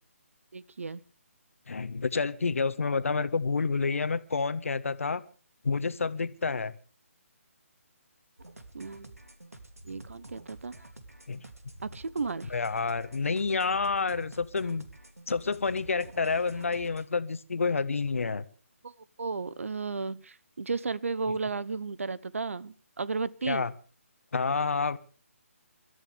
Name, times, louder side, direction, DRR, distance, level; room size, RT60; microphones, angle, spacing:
voice 1, 0.5-1.0 8.7-9.2 9.8-10.8 11.8-12.5 18.8-18.9 19.2-23.7, right 4 dB, 65° right, 20 dB, 0.9 m, -34 dB
voice 2, 1.7-5.2 5.6-6.7 11.3-11.4 12.5-14.8 15.3-18.4 21.3-21.4 23.4-23.7 24.3-25.0, left 4 dB, 65° left, 13 dB, 1.4 m, -29 dB
sound 1, 8.4-17.1, right 1 dB, 90° right, 2.8 m, -49 dB
27.5 x 13.5 x 3.4 m, 0.38 s
figure-of-eight pair, 145°, 8 cm